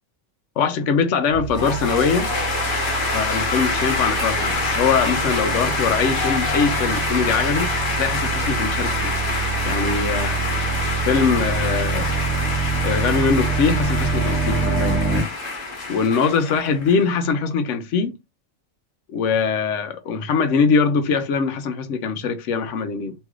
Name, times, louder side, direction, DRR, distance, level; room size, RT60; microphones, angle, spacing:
voice 1, 0.6-2.3 3.1-9.1 9.6-10.4 11.1-12.1 12.8-15.0 15.9-18.1 19.1-23.1, left 5 dB, 65° left, 0.9 m, -22 dB
sound 1, 1.3-15.2, right 5 dB, 5° right, 1.1 m, -26 dB
sound 2, 1.5-17.0, left 3 dB, 40° left, 1.1 m, -26 dB
3.2 x 3.1 x 2.4 m
omnidirectional pair, 1.5 m